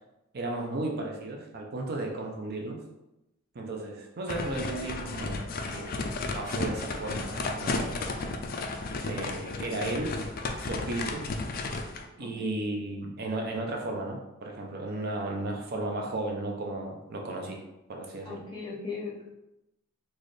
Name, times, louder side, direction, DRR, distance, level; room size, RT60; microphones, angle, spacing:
voice 1, 0.3-2.8 3.5-5.5 5.7-6.1 6.3-8.0 9.0-10.2 10.6-11.5 12.2-17.6 17.9-18.4, right 2 dB, 45° right, 1 dB, 0.5 m, -34 dB
sound 1, 4.3-12.0, left 3 dB, 40° left, 0.3 m, -33 dB
voice 2, 12.2-12.5 18.3-19.3, left 4 dB, 20° left, -5 dB, 0.7 m, -38 dB
4.0 x 2.4 x 3.2 m, 0.92 s
head